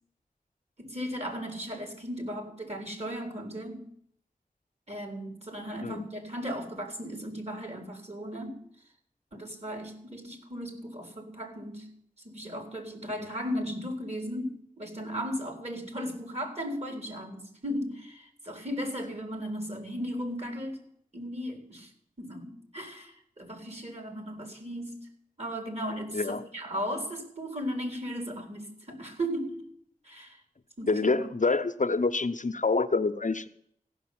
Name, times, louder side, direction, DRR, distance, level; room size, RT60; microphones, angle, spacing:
voice 1, 0.8-3.8 4.9-8.6 9.3-11.9 12.2-20.8 21.1-21.9 22.2-25.1 25.4-29.6 30.0-30.4 30.8-31.3, equal, 45° right, 5 dB, 3.8 m, -36 dB
voice 2, 26.1-26.4 30.9-33.5, left 3 dB, 55° left, 9 dB, 0.8 m, -27 dB
15.0 x 6.3 x 9.3 m, 0.68 s
wide cardioid pair, 40°, 16 cm